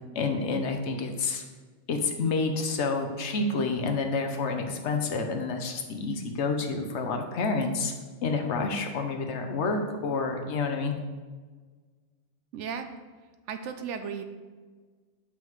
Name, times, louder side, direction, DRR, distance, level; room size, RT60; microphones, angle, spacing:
voice 1, 0.1-1.4 1.9-7.9 8.2-10.9, left 4 dB, 70° left, 4 dB, 1.0 m, -29 dB
voice 2, 12.5-12.9 13.5-14.2, right 7 dB, 75° right, 8 dB, 0.9 m, -35 dB
7.5 x 5.7 x 3.1 m, 1.4 s
omnidirectional pair, 1.3 m